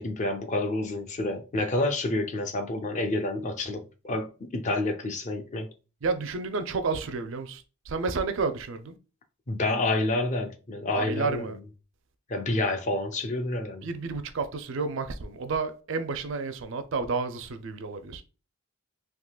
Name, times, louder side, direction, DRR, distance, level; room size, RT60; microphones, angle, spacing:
voice 1, 0.0-5.7 9.5-11.5 12.3-13.8, left 2 dB, 35° left, 0.4 m, -29 dB
voice 2, 6.0-9.0 10.9-11.6 13.8-18.2, right 4 dB, 60° right, 0.4 m, -31 dB
3.6 x 2.8 x 2.3 m
head